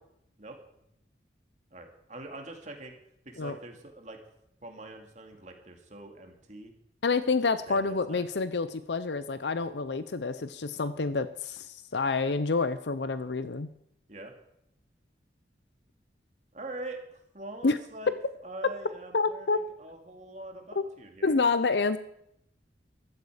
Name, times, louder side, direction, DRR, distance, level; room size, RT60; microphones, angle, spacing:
voice 1, 1.7-3.0 3.3-4.2 4.6-6.7 7.7-8.2 14.1-14.3 16.5-18.1 18.4-21.4, right 2 dB, 40° right, 3 dB, 2.3 m, -44 dB
voice 2, 7.0-13.7 17.6-17.8 19.1-19.6 20.8-20.9 21.2-22.0, left 4 dB, 85° left, 13 dB, 0.7 m, -28 dB
15.5 x 12.5 x 5.1 m, 0.74 s
head